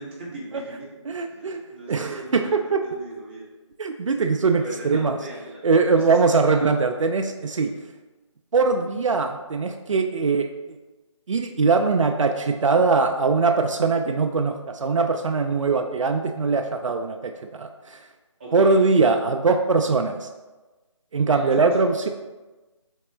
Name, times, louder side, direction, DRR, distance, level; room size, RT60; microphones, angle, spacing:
voice 1, 0.0-0.9 1.3-3.5 4.0-4.2 4.6-6.8 18.4-18.8 21.1-22.0, right 1 dB, 20° right, -4 dB, 0.7 m, -39 dB
voice 2, 1.1-1.6 1.9-2.8 3.8-5.2 5.6-7.7 8.5-10.8 11.3-18.0 18.5-20.3 21.1-22.1, right 4 dB, 75° right, 5 dB, 0.4 m, -21 dB
3.8 x 3.6 x 3.1 m, 1.2 s
figure-of-eight pair, 155°, 16 cm